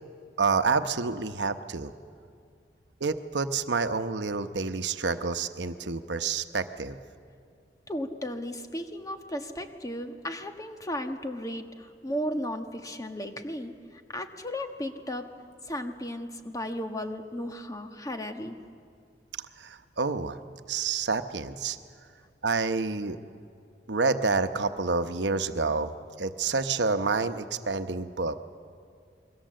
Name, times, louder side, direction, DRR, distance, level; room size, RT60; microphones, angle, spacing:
voice 1, 0.4-1.9 3.0-7.0 19.6-20.4 20.7-21.8 22.4-23.2 23.9-25.9 26.2-28.4, right 4 dB, 75° right, 9 dB, 0.9 m, -28 dB
voice 2, 7.9-15.3 15.7-18.6, equal, 20° left, 6 dB, 1.4 m, -35 dB
28.0 x 22.0 x 7.6 m, 2.3 s
head